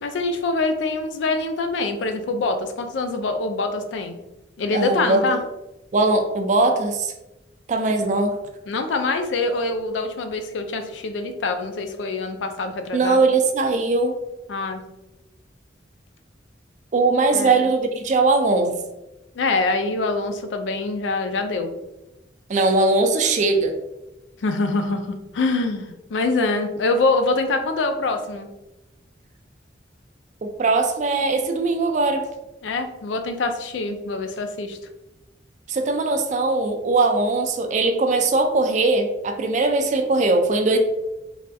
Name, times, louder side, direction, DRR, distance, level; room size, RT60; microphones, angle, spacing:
voice 1, 0.0-4.1 4.6-5.4 8.7-13.2 14.5-14.8 17.3-17.6 19.3-21.8 24.4-28.5 32.6-34.8, left 3 dB, 85° left, 7 dB, 0.4 m, -24 dB
voice 2, 4.7-5.4 5.9-7.1 7.7-8.4 12.9-14.1 16.9-18.7 22.5-23.7 30.4-32.3 35.7-40.8, right 3 dB, 40° right, 6 dB, 0.3 m, -20 dB
3.3 x 2.3 x 2.6 m, 0.97 s
head